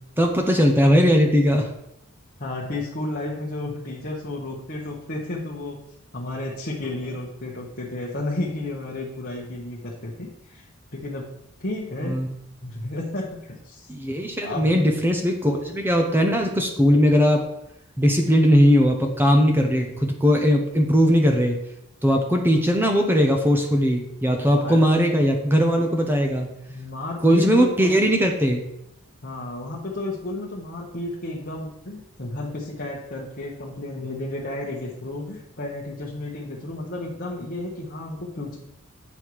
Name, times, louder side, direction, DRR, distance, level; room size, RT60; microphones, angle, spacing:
voice 1, 0.2-1.7 12.0-12.3 13.9-17.4 18.0-21.6 22.0-26.5 27.2-28.7, equal, 10° right, 3 dB, 0.8 m, -19 dB
voice 2, 2.4-5.8 6.1-10.7 10.9-11.3 11.6-12.3 12.6-13.9 14.4-14.7 24.6-24.8 26.7-27.9 29.2-38.6, left 2 dB, 45° left, -4 dB, 1.2 m, -32 dB
8.3 x 5.6 x 4.7 m, 0.79 s
head